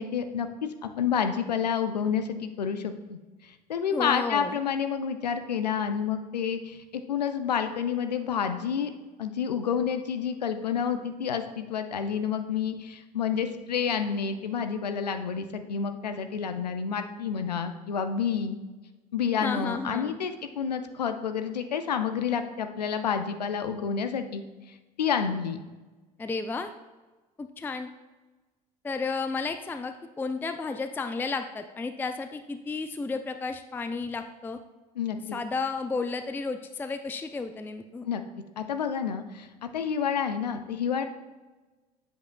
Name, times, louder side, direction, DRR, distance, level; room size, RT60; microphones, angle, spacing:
voice 1, 0.0-8.9 9.2-18.6 19.1-25.6 35.0-35.4 38.0-38.2 38.6-41.0, left 7 dB, 80° left, 9 dB, 0.5 m, -29 dB
voice 2, 3.9-4.6 19.4-20.2 26.2-26.7 27.4-27.9 28.8-34.6 35.3-38.1, left 4 dB, 10° left, 8 dB, 0.4 m, -32 dB
7.9 x 7.7 x 2.3 m, 1.2 s
figure-of-eight pair, 60°, 21 cm